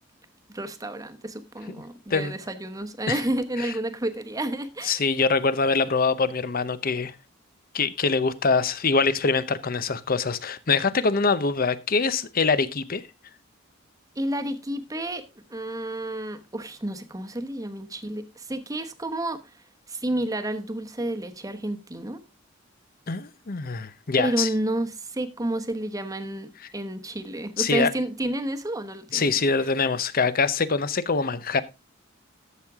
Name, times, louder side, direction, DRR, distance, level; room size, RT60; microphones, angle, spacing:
voice 1, 0.5-5.0 14.2-19.4 19.9-22.2 24.2-29.7, right 1 dB, 20° right, 1.0 m, -30 dB
voice 2, 4.8-7.1 7.7-13.0 23.1-24.5 27.6-27.9 29.1-31.6, left 4 dB, 45° left, 0.8 m, -24 dB
12.5 x 7.4 x 3.6 m
head